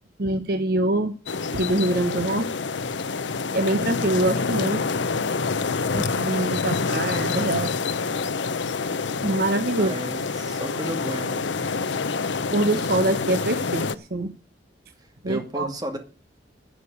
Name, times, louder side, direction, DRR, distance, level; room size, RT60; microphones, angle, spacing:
voice 1, 0.2-1.2 1.5-2.5 3.5-4.8 5.9-7.7 9.2-9.9 12.5-14.3 15.2-15.7, right 1 dB, 55° right, 9 dB, 1.0 m, -24 dB
sound 1, 1.3-13.9, left 4 dB, 80° left, 0.7 m, -27 dB
voice 2, 9.8-11.5 15.3-16.0, right 1 dB, 20° right, 5 dB, 2.1 m, -33 dB
11.5 x 6.8 x 8.4 m, 0.37 s
head